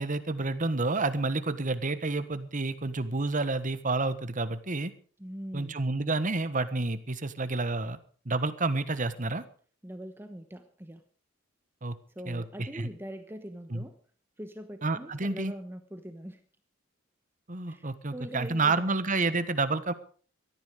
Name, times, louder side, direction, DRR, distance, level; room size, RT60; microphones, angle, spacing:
voice 1, 0.0-4.9 5.5-8.0 8.2-9.4 11.8-11.9 12.3-12.9 13.7-13.8 14.8-15.5 17.5-19.9, right 3 dB, 40° right, 12 dB, 1.4 m, -29 dB
voice 2, 5.2-5.8 9.8-11.0 12.1-14.0 14.4-16.4 17.7-19.0, equal, 10° right, 8 dB, 1.1 m, -42 dB
17.5 x 13.5 x 5.1 m, 0.43 s
head